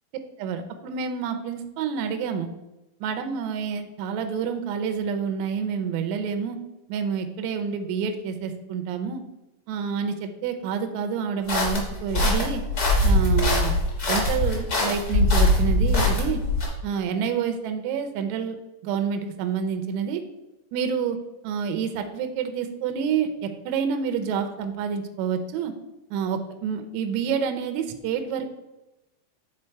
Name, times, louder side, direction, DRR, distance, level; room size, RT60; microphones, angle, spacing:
voice 1, 0.4-2.5 3.0-6.6 6.9-9.2 9.7-12.6 13.0-13.7 14.1-16.4 16.8-18.6 18.8-20.2 20.7-21.2 21.4-25.7 26.1-28.5, right 6 dB, 80° right, 6 dB, 1.7 m, -28 dB
sound 1, 11.5-16.7, left 1 dB, 45° left, 1.3 m, -22 dB
8.7 x 3.9 x 4.5 m, 0.97 s
omnidirectional pair, 3.9 m